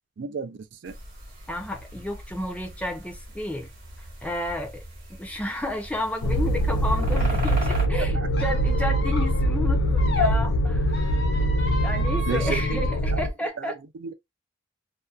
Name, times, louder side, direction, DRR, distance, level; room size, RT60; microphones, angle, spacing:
voice 1, 0.2-0.9 7.9-8.3 12.3-12.8 13.1-13.7 14.0-14.1, right 5 dB, 65° right, 0.4 m, -33 dB
sound 1, 0.8-7.9, right 1 dB, 45° right, 1.0 m, -40 dB
voice 2, 1.5-3.7 4.2-4.8 5.2-11.1 11.8-13.8, left 1 dB, 5° left, 0.5 m, -32 dB
sound 2, 6.2-13.3, equal, 90° left, 0.4 m, -23 dB
Squeak, 8.3-10.3 10.9-13.0, left 2 dB, 55° left, 0.7 m, -33 dB
2.6 x 2.2 x 2.3 m
head